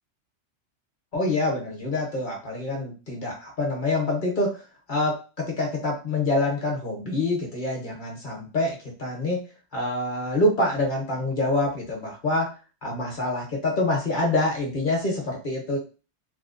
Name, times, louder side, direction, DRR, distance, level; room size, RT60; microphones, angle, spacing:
voice 1, 1.1-4.6 4.9-9.4 9.7-12.5 12.8-15.8, left 2 dB, 45° left, -1 dB, 0.8 m, -26 dB
2.7 x 2.1 x 2.4 m, 0.33 s
omnidirectional pair, 1.3 m